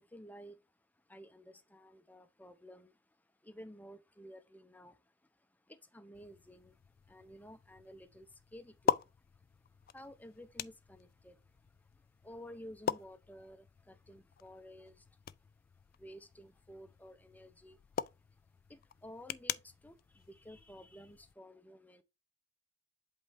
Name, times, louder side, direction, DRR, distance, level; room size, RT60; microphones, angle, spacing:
voice 1, 0.0-22.0, equal, 10° left, 0.6 m, -54 dB
sound 1, 6.1-21.3, left 8 dB, 50° left, 0.3 m, -43 dB
8.0 x 3.6 x 3.4 m
head